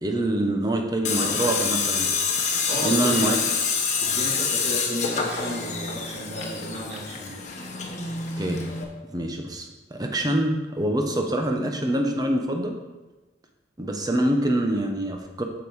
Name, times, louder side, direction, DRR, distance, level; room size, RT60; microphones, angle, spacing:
voice 1, 0.0-2.1 2.8-3.4 8.4-8.6 9.1-12.8 13.8-15.4, right 1 dB, 20° right, 3 dB, 0.9 m, -25 dB
Tools, 1.0-8.8, left 5 dB, 40° left, 1.2 m, -27 dB
voice 2, 2.7-3.4 4.0-7.4, equal, 60° right, -5 dB, 3.0 m, -33 dB
7.6 x 7.2 x 4.9 m, 1.2 s
head